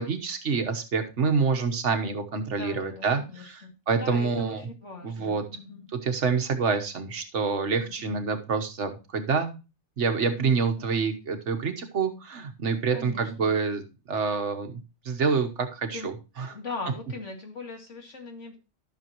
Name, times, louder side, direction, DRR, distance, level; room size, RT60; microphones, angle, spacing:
voice 1, 0.0-4.6 5.0-5.4 6.0-9.5 10.0-13.8 14.1-16.1 16.4-16.5, right 5 dB, 75° right, 6 dB, 1.5 m, -27 dB
voice 2, 2.5-5.9 7.8-8.2 10.3-10.9 12.9-13.5 15.9-16.1 16.5-18.6, left 3 dB, 85° left, 3 dB, 2.4 m, -40 dB
13.0 x 6.4 x 3.0 m, 0.30 s
omnidirectional pair, 1.2 m